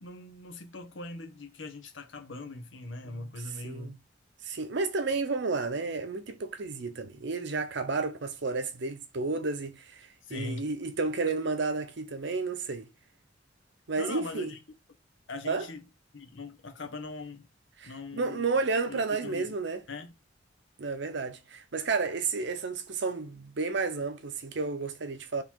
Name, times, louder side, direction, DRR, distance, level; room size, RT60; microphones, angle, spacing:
voice 1, 0.0-4.0 10.2-10.7 14.0-14.6 15.3-15.8 16.1-17.5 17.8-18.5 18.9-19.6 19.9-20.1, left 3 dB, 80° left, 1.0 m, -41 dB
voice 2, 3.6-4.0 4.4-12.9 13.9-14.5 15.5-15.7 17.8-19.8 20.8-25.4, right 4 dB, 65° right, 0.7 m, -31 dB
3.8 x 3.1 x 4.5 m
head